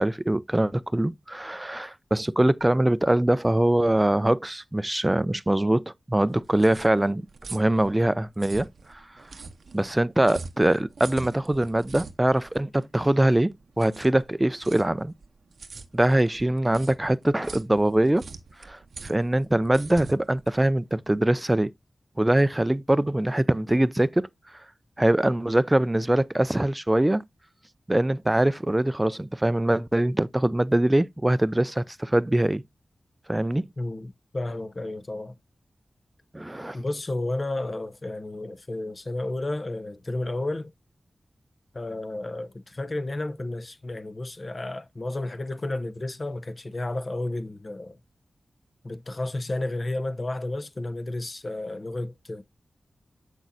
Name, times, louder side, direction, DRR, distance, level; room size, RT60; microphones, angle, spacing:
voice 1, 0.0-7.2 7.5-8.7 9.7-13.5 13.8-15.1 15.9-18.2 18.7-21.7 22.2-24.3 25.0-27.2 27.9-32.6 33.3-33.6 36.3-36.8, right 1 dB, 15° right, 0.4 m, -23 dB
sound 1, 6.1-21.3, right 4 dB, 80° right, 0.7 m, -44 dB
voice 2, 33.8-35.4 36.7-40.7 41.7-48.0 48.8-52.4, left 2 dB, 40° left, 0.8 m, -32 dB
7.2 x 6.2 x 2.6 m
cardioid pair, 60°, 0 cm